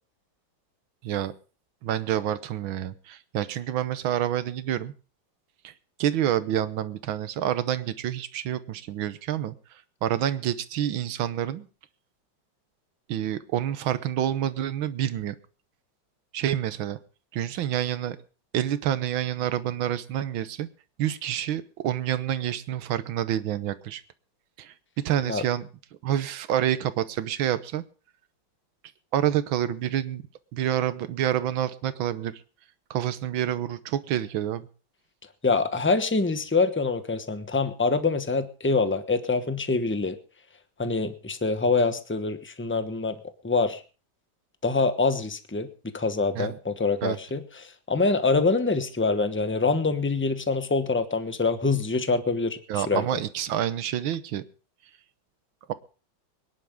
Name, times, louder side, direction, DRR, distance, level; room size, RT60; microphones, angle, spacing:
voice 1, 1.8-4.9 5.6-5.7 6.0-11.7 13.1-15.4 16.3-17.0 17.3-18.2 18.5-20.7 21.0-24.0 24.6-25.7 26.0-27.8 29.1-30.2 30.5-32.4 32.9-34.7 46.4-46.6 47.0-47.2 52.7-54.4 55.7-55.8, right 11 dB, 85° right, 14 dB, 1.7 m, -28 dB
voice 2, 35.4-40.2 40.8-43.2 43.4-43.8 44.6-45.7 45.9-53.0, left 3 dB, 10° left, 9 dB, 0.8 m, -25 dB
24.5 x 10.5 x 3.7 m, 0.35 s
omnidirectional pair, 2.1 m